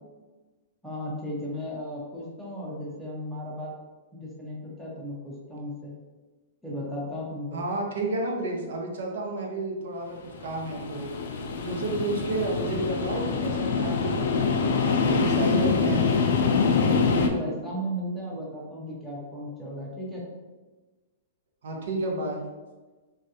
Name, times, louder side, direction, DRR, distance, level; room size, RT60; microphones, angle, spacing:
voice 1, 0.8-3.7 4.1-5.9 6.6-7.6 15.5-16.0 16.7-20.2, equal, ahead, -6 dB, 0.5 m, -35 dB
voice 2, 7.5-11.1 11.7-14.3 14.8-16.1 21.6-22.4, right 2 dB, 70° right, 0 dB, 0.6 m, -31 dB
sound 1, 10.3-17.3, left 5 dB, 65° left, 0.3 m, -25 dB
3.2 x 2.4 x 2.7 m, 1.2 s
hypercardioid pair, 170°, 0 cm